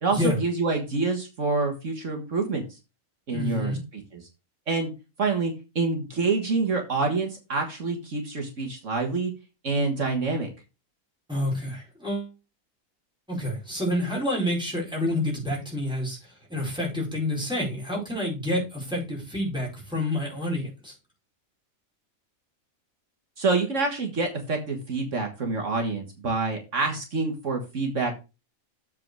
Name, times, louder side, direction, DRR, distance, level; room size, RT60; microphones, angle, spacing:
voice 1, 0.0-2.7 3.3-4.2 4.7-4.9 5.2-9.3 9.6-10.5 23.4-28.2, right 3 dB, 60° right, 3 dB, 1.9 m, -27 dB
voice 2, 3.3-3.8 11.3-12.3 13.3-16.2 16.5-20.9, left 1 dB, 5° right, -4 dB, 4.8 m, -28 dB
7.7 x 4.7 x 6.3 m, 0.28 s
omnidirectional pair, 1.4 m